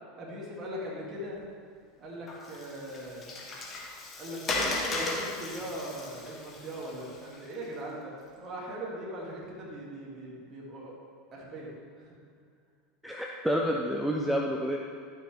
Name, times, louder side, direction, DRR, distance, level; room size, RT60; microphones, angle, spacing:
voice 1, 0.2-1.4 2.0-3.3 4.2-10.9 11.3-12.1, right 1 dB, 35° right, -4 dB, 2.4 m, -40 dB
Water, 2.3-7.6, left 2 dB, 30° left, 1.6 m, -36 dB
voice 2, 13.0-14.8, equal, 5° right, 0 dB, 0.7 m, -29 dB
12.0 x 6.2 x 3.4 m, 2.2 s
hypercardioid pair, 95°, 0 cm